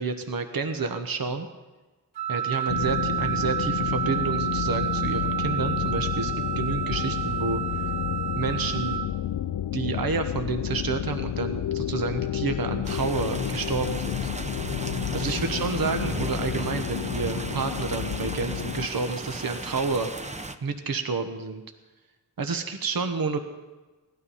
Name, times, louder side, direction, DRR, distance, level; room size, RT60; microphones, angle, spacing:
voice 1, 0.0-1.5 2.3-7.6 8.4-9.0 9.7-14.3 15.1-20.1 20.6-21.6 22.4-23.4, right 4 dB, 60° right, 6 dB, 1.1 m, -29 dB
Wind instrument woodwind instrument, 2.2-9.1, right 9 dB, 85° right, 0.9 m, -30 dB
sound 1, 2.7-18.9, left 10 dB, 80° left, 0.5 m, -30 dB
sound 2, 12.8-20.6, right 2 dB, 20° right, 0.8 m, -35 dB
17.5 x 12.0 x 5.6 m, 1.2 s
wide cardioid pair, 90°, 39 cm